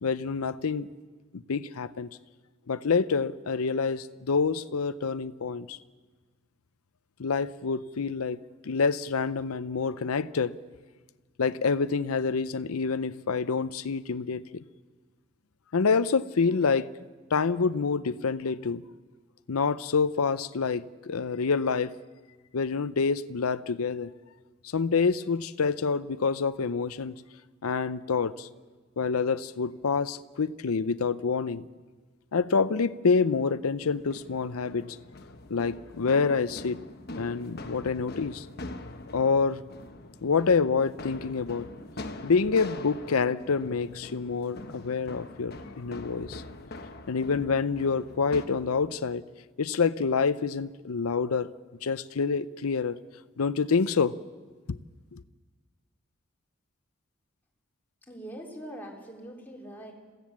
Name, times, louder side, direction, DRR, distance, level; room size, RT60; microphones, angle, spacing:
voice 1, 0.0-0.9 1.3-2.1 2.7-5.8 7.2-8.4 8.6-10.6 11.4-14.6 15.7-16.9 17.3-18.8 19.5-21.9 22.5-24.1 24.6-27.1 27.6-28.5 29.0-31.6 32.3-35.0 35.5-36.8 37.2-38.5 39.1-39.6 40.2-41.7 42.2-46.4 47.1-49.2 49.6-51.5 51.8-53.0 53.4-54.2 54.7-54.8 55.1-55.2, left 5 dB, 85° left, 15 dB, 0.6 m, -27 dB
sound 1, 33.8-48.5, left 2 dB, 45° left, 1.2 m, -43 dB
voice 2, 58.1-59.9, right 1 dB, 10° left, -2 dB, 3.6 m, -42 dB
27.5 x 16.0 x 7.3 m, 1.4 s
head